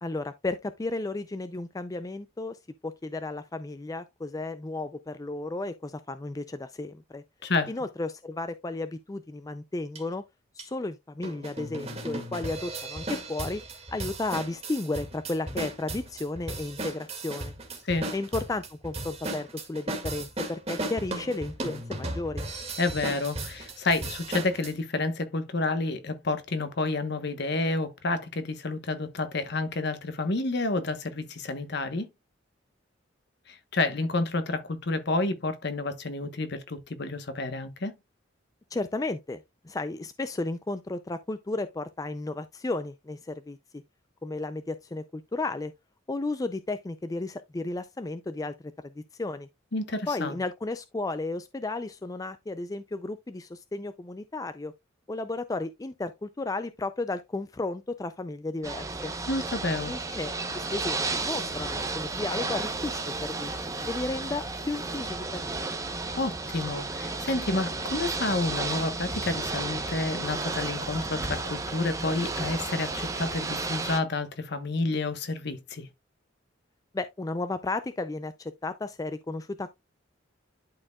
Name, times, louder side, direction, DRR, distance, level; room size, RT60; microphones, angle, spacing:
voice 1, 0.0-7.2 7.7-10.2 10.5-13.6 13.9-17.5 18.1-22.4 38.7-43.8 44.2-45.7 46.1-48.6 48.8-49.5 50.1-54.7 55.1-59.1 59.9-63.5 63.9-65.4 76.9-79.7, left 2 dB, 20° left, 0.4 m, -33 dB
sound 1, 9.9-10.0 10.6-10.7 11.2-24.7, right 1 dB, 30° right, 2.1 m, -36 dB
voice 2, 22.8-32.1 33.5-37.9 49.7-50.4 59.3-59.9 66.2-75.9, left 2 dB, 55° left, 1.1 m, -29 dB
Ocean / Boat Water vehicle, 58.6-74.0, right 3 dB, 15° right, 0.8 m, -33 dB
11.5 x 4.4 x 2.3 m
head